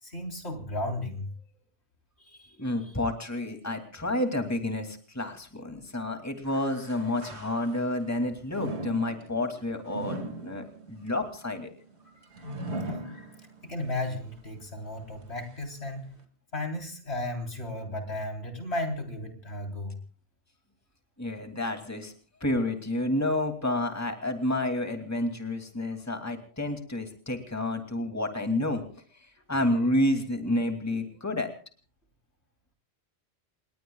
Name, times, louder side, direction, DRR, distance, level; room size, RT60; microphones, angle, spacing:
voice 1, 0.0-1.3 2.2-2.9 12.3-12.5 12.9-13.4 13.6-16.1 16.5-20.0, left 1 dB, 70° left, 3 dB, 4.1 m, -35 dB
voice 2, 2.6-11.7 21.2-22.1 22.4-28.8 29.2-31.5, left 1 dB, 15° left, 5 dB, 2.6 m, -30 dB
sound 1, 6.5-8.0 8.5-13.8 14.3-14.4 15.2-15.3, right 2 dB, 75° right, 2.6 m, -39 dB
29.0 x 21.0 x 2.3 m, 0.40 s
omnidirectional pair, 1.1 m